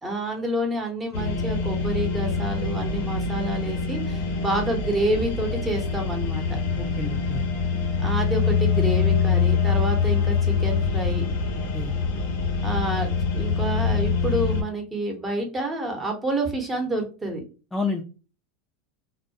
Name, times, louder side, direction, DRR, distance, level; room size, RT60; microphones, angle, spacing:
voice 1, 0.0-6.6 8.0-11.3 12.6-17.4, right 1 dB, 15° right, 3 dB, 0.8 m, -28 dB
sound 1, 1.1-14.6, left 5 dB, 70° left, 0.6 m, -24 dB
voice 2, 6.8-7.4 11.7-11.9 17.7-18.0, left 3 dB, 10° left, 1 dB, 0.4 m, -29 dB
2.2 x 2.1 x 2.6 m, 0.34 s
supercardioid pair, 115°, 0 cm